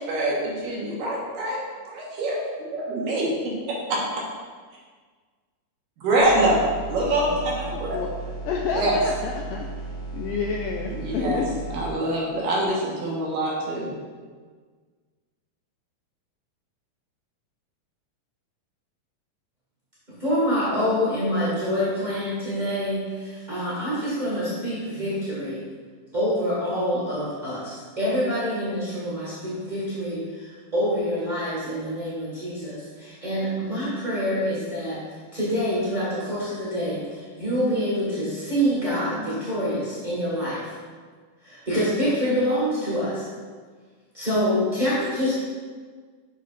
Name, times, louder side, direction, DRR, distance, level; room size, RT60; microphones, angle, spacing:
voice 1, 0.0-1.6 1.9-2.4 2.7-3.6 3.9-4.0 6.0-6.6 6.9-8.0 8.7-9.0 10.9-11.4 11.7-13.9, right 1 dB, 70° right, -4 dB, 2.7 m, -25 dB
sound 1, 6.2-11.9, right 3 dB, 40° left, 1.4 m, -35 dB
voice 2, 8.5-9.7 10.1-11.5, left 6 dB, 85° left, 0 dB, 1.9 m, -29 dB
voice 3, 20.2-25.6 26.1-40.7 41.4-43.3 44.1-45.3, equal, 50° right, -9 dB, 0.5 m, -26 dB
8.4 x 6.8 x 2.5 m, 1.5 s
omnidirectional pair, 4.3 m